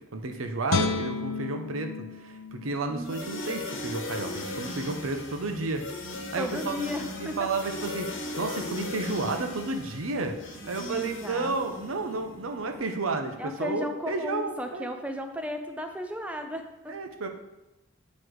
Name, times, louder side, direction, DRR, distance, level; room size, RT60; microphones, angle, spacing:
voice 1, 0.0-5.9 6.3-6.8 7.1-8.1 8.4-10.4 10.7-14.9 16.9-17.3, right 3 dB, 90° right, 5 dB, 0.7 m, -32 dB
Guitar, 0.7-3.8 4.3-4.4, left 4 dB, 90° left, 0.5 m, -32 dB
sound 1, 2.7-12.8, left 1 dB, 20° left, 1.8 m, -53 dB
voice 2, 2.9-3.4 6.4-7.5 10.9-11.8 13.4-16.9, left 1 dB, 5° right, 5 dB, 0.4 m, -35 dB
sound 2, 3.0-12.2, left 2 dB, 70° left, 1.1 m, -38 dB
8.0 x 3.2 x 4.7 m, 0.97 s
head